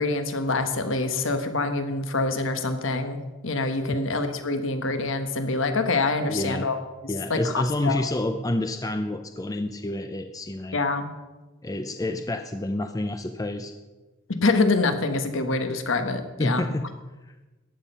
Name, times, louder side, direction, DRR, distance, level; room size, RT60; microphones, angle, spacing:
voice 1, 0.0-6.8 7.3-8.0 10.7-11.1 14.3-16.6, left 3 dB, 70° left, 8 dB, 1.3 m, -25 dB
voice 2, 6.3-6.7 7.1-10.8 11.6-13.7 16.4-16.9, left 1 dB, 15° left, 8 dB, 0.5 m, -28 dB
14.5 x 10.0 x 5.6 m, 1.2 s
head